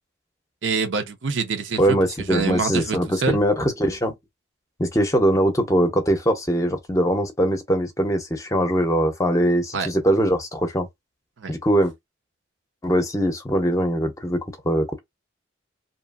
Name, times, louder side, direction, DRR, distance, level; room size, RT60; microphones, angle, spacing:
voice 1, 0.6-2.0 2.3-3.4 9.7-9.9 11.4-11.5, right 4 dB, 75° right, 0.6 m, -25 dB
voice 2, 1.8-4.2 4.8-10.9 11.5-11.9 12.8-15.0, equal, 15° left, 0.6 m, -21 dB
2.8 x 2.4 x 2.3 m
head